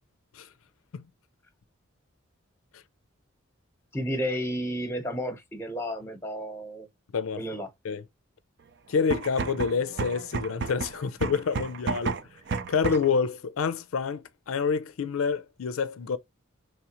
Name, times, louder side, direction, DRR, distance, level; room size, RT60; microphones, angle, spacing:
voice 1, 3.9-6.9 7.4-7.7, equal, 10° left, 0.9 m, -32 dB
voice 2, 8.9-12.2 12.7-16.2, left 5 dB, 90° left, 0.5 m, -28 dB
sound 1, 9.0-13.2, right 4 dB, 55° right, 0.5 m, -32 dB
4.8 x 3.3 x 2.9 m
head